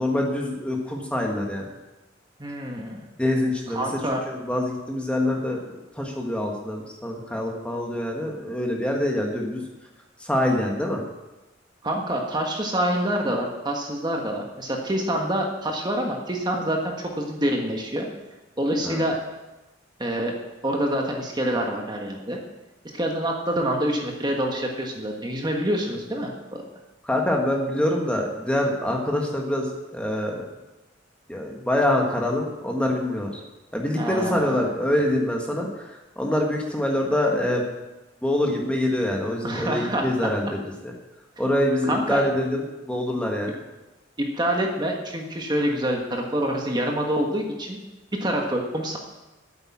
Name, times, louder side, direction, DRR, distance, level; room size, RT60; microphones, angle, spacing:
voice 1, 0.0-1.6 3.2-4.0 4.2-5.6 5.9-9.6 10.2-11.0 18.8-19.0 27.0-30.5 31.3-33.4 33.7-37.6 38.2-40.9 41.4-43.6, left 1 dB, 5° left, 0 dB, 1.5 m, -25 dB
voice 2, 2.4-3.1 3.7-4.2 11.8-18.1 18.6-19.2 20.0-20.3 20.6-22.4 22.9-26.6 34.0-34.5 39.4-40.1 41.9-42.2 44.2-47.8 48.1-49.0, right 1 dB, 20° right, 1 dB, 1.5 m, -26 dB
9.0 x 8.0 x 8.4 m, 1.1 s
head